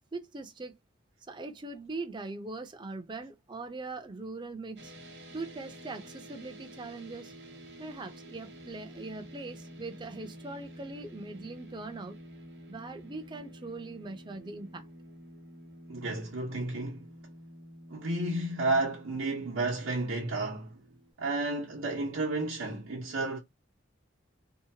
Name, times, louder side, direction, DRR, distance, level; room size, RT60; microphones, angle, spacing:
voice 1, 0.1-0.8 1.3-4.9 5.3-7.3 7.8-12.2 12.7-14.9, right 3 dB, 25° right, 0.5 m, -41 dB
sound 1, 4.8-21.1, equal, 55° right, 0.9 m, -50 dB
voice 2, 15.9-17.1 17.9-20.7 21.2-23.4, right 2 dB, 85° right, 0.8 m, -32 dB
2.8 x 2.2 x 2.7 m
head